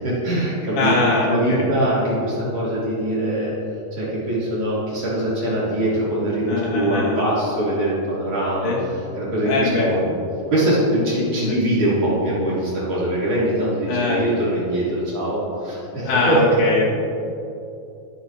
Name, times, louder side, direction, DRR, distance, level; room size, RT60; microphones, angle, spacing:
voice 1, 0.0-3.5 3.9-8.7 9.2-10.0 10.5-16.6, right 1 dB, 40° right, -9 dB, 4.2 m, -22 dB
voice 2, 0.8-1.7 6.5-7.2 8.6-8.8 9.4-10.2 11.2-11.6 13.9-14.2 16.1-16.9, left 3 dB, 85° left, -4 dB, 4.1 m, -22 dB
22.0 x 10.5 x 2.9 m, 2.8 s
omnidirectional pair, 4.4 m